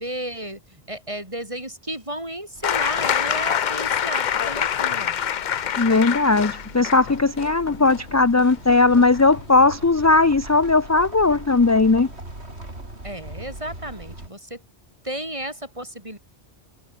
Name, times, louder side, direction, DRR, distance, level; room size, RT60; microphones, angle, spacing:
voice 1, 0.0-5.2 13.0-14.6 15.0-16.2, right 1 dB, 30° right, 6.4 m, -33 dB
sound 1, 2.5-14.3, right 1 dB, 80° right, 6.4 m, -41 dB
sound 2, 2.6-10.2 11.4-11.5, left 8 dB, 50° left, 0.7 m, -26 dB
voice 2, 5.8-12.1, left 3 dB, 25° left, 0.4 m, -18 dB
omnidirectional pair, 1.1 m